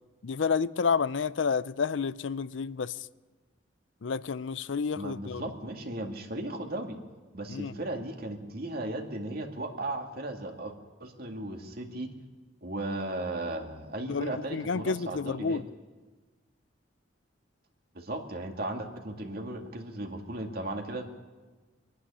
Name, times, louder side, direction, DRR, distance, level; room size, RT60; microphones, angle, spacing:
voice 1, 0.2-2.9 4.0-5.4 7.5-7.7 14.1-15.6, left 5 dB, 80° left, 0.5 m, -30 dB
voice 2, 5.0-7.0 7.3-10.7 11.0-12.1 12.6-15.6 17.9-21.0, right 1 dB, 55° right, 2.2 m, -36 dB
23.0 x 11.5 x 10.0 m
head